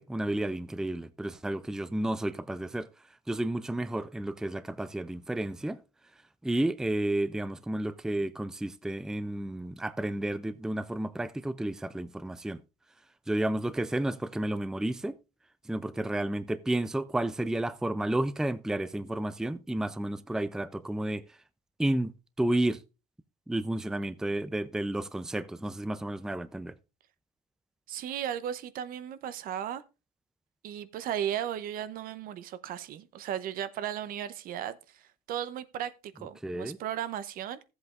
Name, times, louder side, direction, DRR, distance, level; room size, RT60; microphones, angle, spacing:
voice 1, 0.0-2.9 3.3-5.8 6.4-12.6 13.3-15.2 15.7-21.2 21.8-22.1 22.4-22.8 23.5-26.7 36.4-36.8, right 1 dB, 5° right, 0.5 m, -31 dB
voice 2, 27.9-29.8 30.6-37.6, right 10 dB, 55° right, 0.7 m, -36 dB
14.5 x 8.0 x 2.4 m
supercardioid pair, 90°, 17 cm